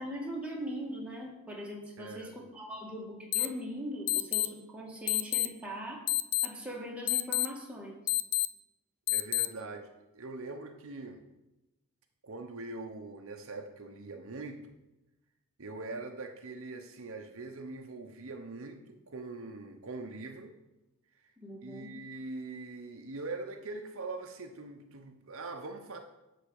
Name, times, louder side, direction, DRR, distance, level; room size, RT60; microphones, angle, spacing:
voice 1, 0.0-6.1 6.4-8.0 21.4-21.9, equal, 5° right, -2 dB, 1.8 m, -40 dB
voice 2, 2.0-2.3 9.1-11.2 12.2-14.7 15.6-20.5 21.6-26.0, right 3 dB, 65° right, 5 dB, 0.9 m, -42 dB
sound 1, 3.3-3.5 4.1-4.5 5.1-5.5 6.1-6.5 7.1-7.5 8.1-8.5 9.1-9.5, left 16 dB, 80° left, 0.4 m, -28 dB
11.0 x 4.3 x 7.0 m, 0.98 s
head